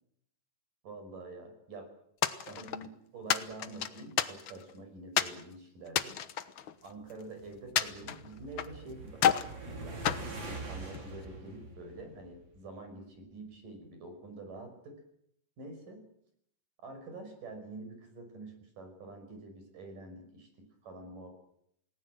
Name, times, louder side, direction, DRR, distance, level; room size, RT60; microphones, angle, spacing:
voice 1, 0.8-1.9 2.4-6.2 6.8-10.2 10.5-15.0 15.6-16.0 16.8-20.5 20.8-21.4, right 2 dB, 75° right, 5 dB, 7.3 m, -47 dB
sound 1, 2.2-2.9 3.3-4.7 5.2-5.4 5.9-7.2 7.8-8.8 9.2-9.5 10.0-11.1, left 9 dB, 75° left, 1.1 m, -31 dB
sound 2, 7.2-12.7, right 2 dB, 35° right, 3.9 m, -44 dB
29.0 x 18.5 x 7.7 m, 0.71 s
omnidirectional pair, 3.8 m